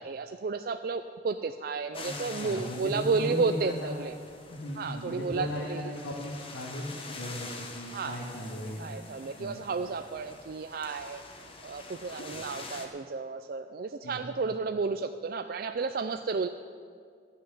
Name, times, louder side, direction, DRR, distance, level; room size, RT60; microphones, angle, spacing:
voice 1, 0.0-4.2 4.8-5.9 7.9-8.2 8.8-11.2 11.6-16.5, right 4 dB, 50° right, 8 dB, 0.4 m, -32 dB
sound 1, 1.9-12.9, left 3 dB, 30° left, 1.2 m, -46 dB
voice 2, 2.0-3.9 4.5-9.1 9.4-9.6 12.7-12.9 14.0-14.3, left 1 dB, 80° left, -5 dB, 1.9 m, -37 dB
13.5 x 6.5 x 9.5 m, 2.2 s
head